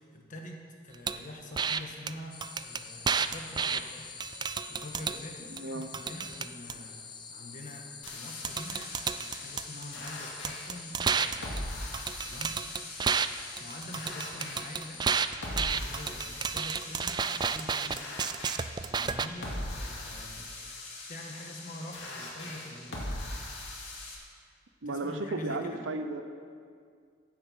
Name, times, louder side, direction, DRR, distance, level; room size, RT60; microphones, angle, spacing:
voice 1, 0.0-4.1 4.4-11.4 12.2-12.6 13.6-15.0 15.4-18.1 18.8-20.5 21.1-23.2 24.8-25.8, left 1 dB, 40° left, 1 dB, 1.5 m, -45 dB
sound 1, 1.1-1.2 1.6-1.8 2.1-2.2 2.4-3.8 4.2-5.2 5.6-6.7 8.1-8.2 8.4-10.1 10.4-13.3 13.6-19.3, right 6 dB, 20° right, 0.3 m, -31 dB
sound 2, 2.3-15.3, left 5 dB, 25° left, 0.7 m, -47 dB
voice 2, 5.5-5.9 24.8-26.2, right 2 dB, 80° right, 8 dB, 0.9 m, -34 dB
sound 3, 8.0-24.1, left 1 dB, 70° left, 2.4 m, -41 dB
15.0 x 7.9 x 5.7 m, 2.2 s
head